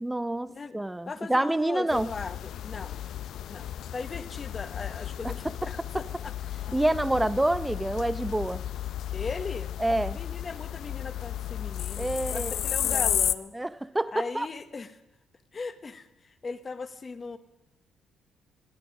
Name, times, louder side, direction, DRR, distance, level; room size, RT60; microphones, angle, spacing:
voice 1, 0.0-2.1 6.7-8.6 9.8-10.2 12.0-12.6 12.9-13.1 13.5-14.5, right 1 dB, 10° right, 15 dB, 0.5 m, -27 dB
voice 2, 1.1-2.9 3.5-3.7 3.9-6.5 9.1-9.7 10.1-13.6 14.1-14.9 15.5-17.4, left 4 dB, 35° left, 11 dB, 1.0 m, -38 dB
sound 1, 1.9-13.3, left 11 dB, 75° left, 0.5 m, -33 dB
18.0 x 9.7 x 6.2 m, 1.0 s
cardioid pair, 90°, 0 cm